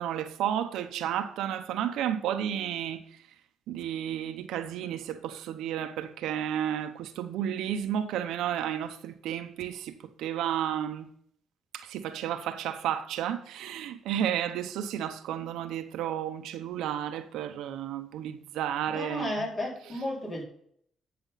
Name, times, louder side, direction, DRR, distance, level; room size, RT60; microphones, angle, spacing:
voice 1, 0.0-3.0 3.7-11.1 11.7-19.5, right 10 dB, 90° right, 0.9 m, -32 dB
voice 2, 18.8-20.4, left 1 dB, 40° left, 4.5 m, -33 dB
12.0 x 6.9 x 4.1 m
cardioid pair, 90°, 0 cm